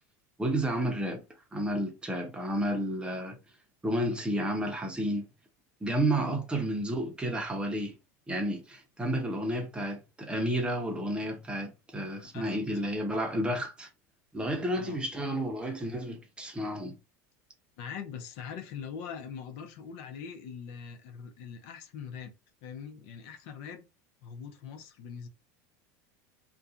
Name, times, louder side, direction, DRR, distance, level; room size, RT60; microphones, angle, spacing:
voice 1, 0.4-1.2 1.5-3.4 3.8-5.3 5.8-7.9 8.3-13.9 14.3-17.0, right 1 dB, 10° right, 0.7 m, -31 dB
voice 2, 17.8-22.3 22.6-23.8 24.2-25.3, left 7 dB, 65° left, 0.7 m, -42 dB
2.6 x 2.3 x 2.5 m
supercardioid pair, 120°, 9 cm